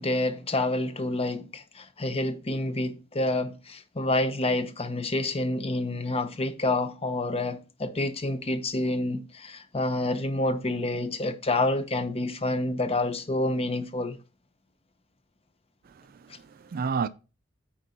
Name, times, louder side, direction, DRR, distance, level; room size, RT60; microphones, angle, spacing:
voice 1, 0.0-14.2, left 2 dB, 30° left, 0.8 m, -28 dB
voice 2, 15.9-17.1, right 5 dB, 45° right, 0.4 m, -32 dB
9.2 x 4.4 x 4.1 m
head